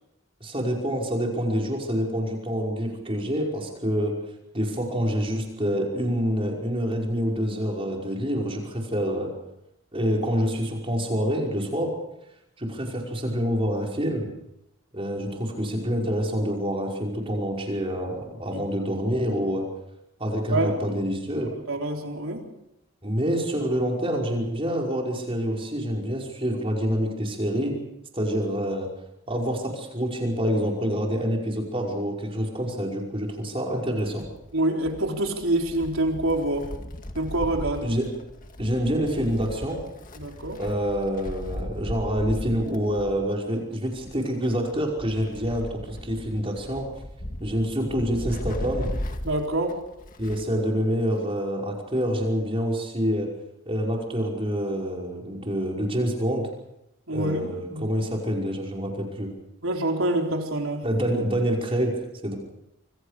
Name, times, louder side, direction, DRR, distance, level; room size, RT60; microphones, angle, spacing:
voice 1, 0.4-4.1 4.5-9.3 9.9-11.9 12.6-14.3 14.9-19.7 20.2-21.5 23.0-27.7 28.1-28.9 29.3-34.2 37.8-38.1 38.6-39.8 40.6-46.9 47.4-48.9 50.2-53.3 53.7-56.5 57.1-59.3 60.8-62.0 62.2-62.3, equal, 25° right, 0 dB, 5.3 m, -27 dB
voice 2, 20.5-21.0 21.7-22.5 34.5-36.7 37.1-37.9 40.2-40.6 49.2-49.8 57.1-57.9 59.6-60.9, right 1 dB, 80° right, 2 dB, 4.1 m, -26 dB
Wind, 34.0-50.6 50.9-51.0 52.0-52.1, left 1 dB, 40° left, 2.0 m, -37 dB
27.0 x 24.0 x 5.1 m, 0.86 s
head